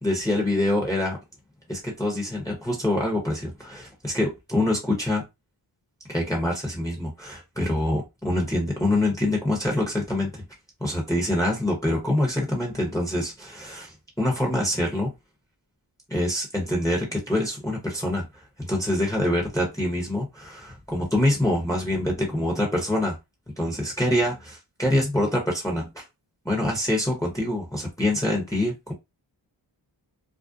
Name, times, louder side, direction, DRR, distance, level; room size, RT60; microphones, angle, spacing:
voice 1, 0.0-1.2 1.7-5.2 6.1-10.4 10.8-15.1 16.1-23.2 23.6-26.0 26.4-28.9, left 1 dB, 5° left, 0.8 m, -25 dB
2.6 x 2.0 x 2.4 m
wide cardioid pair, 50°, 50 cm